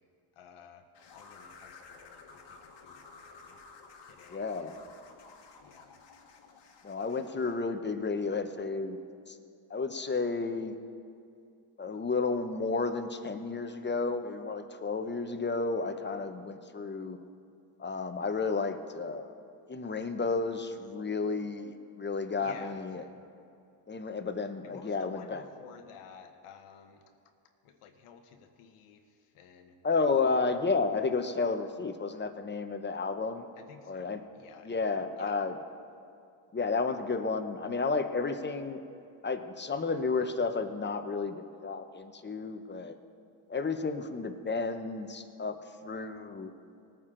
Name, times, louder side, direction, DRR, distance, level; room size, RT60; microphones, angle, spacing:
voice 1, 0.3-0.8 1.1-3.6 4.0-4.9 5.6-6.0 22.4-23.3 24.6-27.0 27.6-29.8 30.0-30.4 30.9-31.0 33.6-34.9 35.2-35.4, left 6 dB, 85° left, 6 dB, 1.2 m, -53 dB
sound 1, 0.9-7.6, left 4 dB, 55° left, 1.5 m, -53 dB
voice 2, 4.3-4.8 6.8-9.0 9.3-9.4 9.7-10.7 11.8-17.2 17.8-19.3 19.7-23.0 23.9-25.4 29.8-33.5 33.9-34.2 34.6-35.6 36.5-38.8 39.2-43.0 43.5-45.6 45.8-46.5, left 4 dB, 20° left, 8 dB, 0.8 m, -32 dB
19.5 x 9.0 x 3.8 m, 2.5 s
cardioid pair, 100°, 50 cm